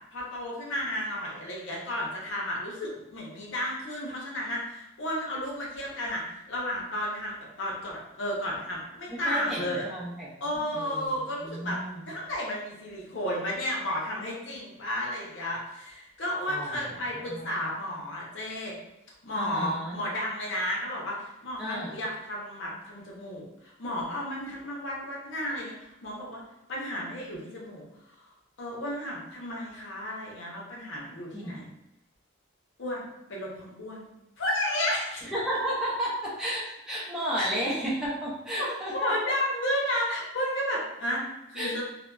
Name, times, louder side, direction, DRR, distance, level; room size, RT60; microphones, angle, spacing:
voice 1, 0.1-9.9 10.4-11.8 12.1-18.8 19.2-26.4 26.7-27.9 28.6-31.7 32.8-34.1 34.4-35.2 37.4-37.5 38.6-38.7 38.9-41.8, left 1 dB, 65° left, -3 dB, 0.7 m, -33 dB
voice 2, 9.1-10.3 10.5-11.1 11.4-12.1 16.5-17.7 19.3-20.0 21.6-22.0 31.3-31.6 35.2-39.1 41.5-41.7, right 1 dB, 5° right, -8 dB, 0.6 m, -33 dB
2.6 x 2.1 x 2.2 m, 0.89 s
head